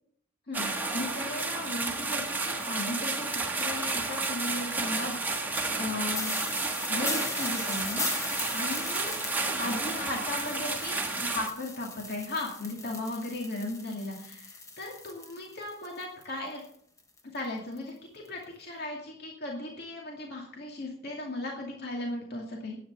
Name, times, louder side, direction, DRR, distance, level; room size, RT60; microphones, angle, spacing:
sound 1, 0.5-11.5, right 3 dB, 10° right, 1.5 m, -31 dB
voice 1, 0.9-6.3 6.9-16.6 17.3-22.8, left 2 dB, 50° left, -1 dB, 2.4 m, -37 dB
sound 2, 2.3-4.9 5.5-5.6 5.8-5.9 6.1-16.2 16.5-17.5 17.8-17.9 18.3-18.4, left 3 dB, 15° left, 1.2 m, -39 dB
11.0 x 9.2 x 6.9 m, 0.65 s
head